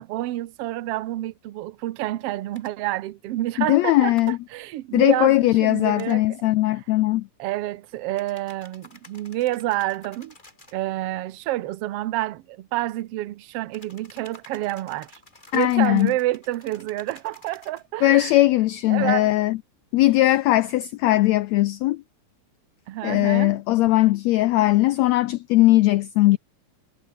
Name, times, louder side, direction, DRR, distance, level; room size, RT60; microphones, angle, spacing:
voice 1, 0.0-6.2 7.4-10.3 10.7-15.2 15.5-18.3 18.9-19.3 22.9-23.6, right 16 dB, 70° right, 1.5 m, -28 dB
sound 1, 2.5-2.7 4.2-4.4 6.0-6.2 8.2-10.8 13.7-17.8 18.2-18.4, left 2 dB, 15° left, 4.2 m, -51 dB
voice 2, 3.6-4.4 4.9-7.3 15.5-16.1 18.0-19.6 19.9-22.0 23.0-26.4, left 17 dB, 80° left, 1.6 m, -19 dB
omnidirectional pair, 3.7 m